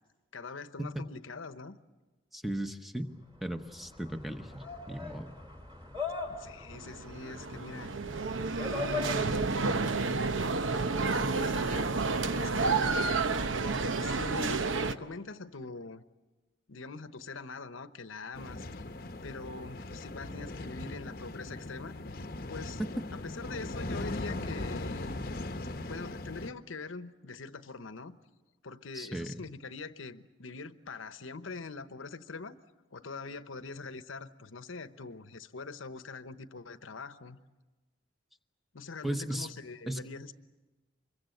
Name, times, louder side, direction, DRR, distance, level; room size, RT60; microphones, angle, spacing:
voice 1, 0.3-1.8 6.2-7.9 8.7-9.5 11.3-11.9 12.4-13.2 13.9-16.0 16.7-18.7 19.2-22.0 22.5-22.8 23.1-25.2 25.9-28.2 28.6-32.6 32.9-37.4 38.7-40.3, left 4 dB, 90° left, 11 dB, 1.0 m, -43 dB
voice 2, 2.3-3.1 3.4-5.3 28.9-29.3 39.0-39.5 39.9-40.0, right 1 dB, ahead, 7 dB, 1.0 m, -36 dB
sound 1, 3.3-9.7, left 4 dB, 20° right, 3.0 m, -41 dB
sound 2, 6.8-14.9, right 3 dB, 80° right, 0.9 m, -30 dB
sound 3, 18.3-26.5, left 2 dB, 45° left, 0.9 m, -39 dB
25.5 x 22.5 x 7.8 m, 1.2 s
head